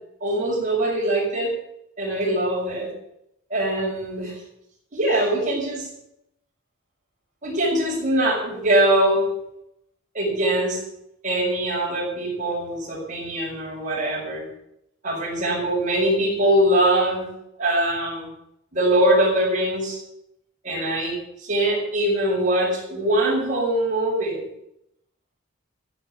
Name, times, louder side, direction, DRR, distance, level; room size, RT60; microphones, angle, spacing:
voice 1, 0.2-1.5 2.0-2.9 3.5-4.4 4.9-5.9 7.4-9.3 10.1-10.8 11.2-14.4 15.0-17.3 17.6-18.3 18.7-20.0 20.6-24.5, right 1 dB, 40° right, -3 dB, 5.9 m, -22 dB
14.0 x 9.1 x 7.3 m, 0.80 s
head